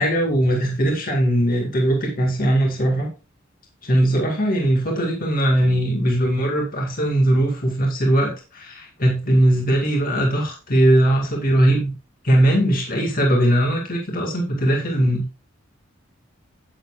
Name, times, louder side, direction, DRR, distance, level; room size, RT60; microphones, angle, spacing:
voice 1, 0.0-3.1 3.8-11.9 12.2-15.3, right 1 dB, 45° left, 0 dB, 2.1 m, -20 dB
9.8 x 8.8 x 2.5 m, 0.30 s
head